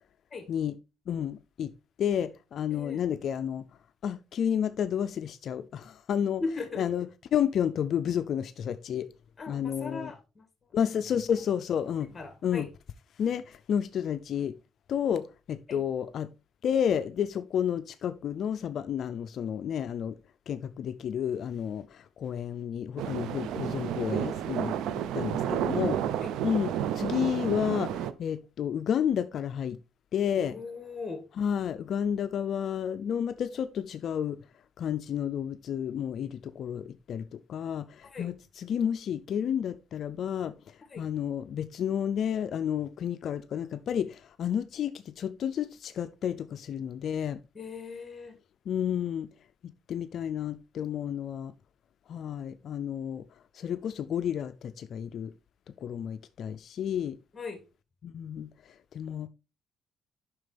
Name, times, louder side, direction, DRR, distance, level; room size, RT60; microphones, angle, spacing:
voice 1, 1.1-1.7 2.0-3.6 4.0-6.4 6.8-7.1 7.3-9.1 9.5-10.1 10.7-12.1 12.4-12.7 13.2-14.5 14.9-16.3 16.6-20.2 20.5-24.8 25.1-26.0 26.4-29.8 30.1-30.5 31.4-34.4 34.8-37.2 37.5-40.5 41.0-47.4 48.7-49.3 49.9-51.5 52.1-53.2 53.5-55.3 55.8-57.1 58.0-58.5 58.9-59.3, left 8 dB, 65° left, 0.4 m, -31 dB
voice 2, 2.7-3.0 6.4-6.9 9.4-10.5 11.3-11.4 12.1-12.7 15.7-15.8 26.2-26.3 30.4-31.2 38.1-38.3 40.9-41.1 47.5-48.4 57.3-57.6, left 4 dB, 30° left, 2.1 m, -38 dB
sound 1, 23.0-28.1, right 10 dB, 90° right, 0.5 m, -31 dB
7.8 x 5.9 x 3.4 m
cardioid pair, 90°, 0 cm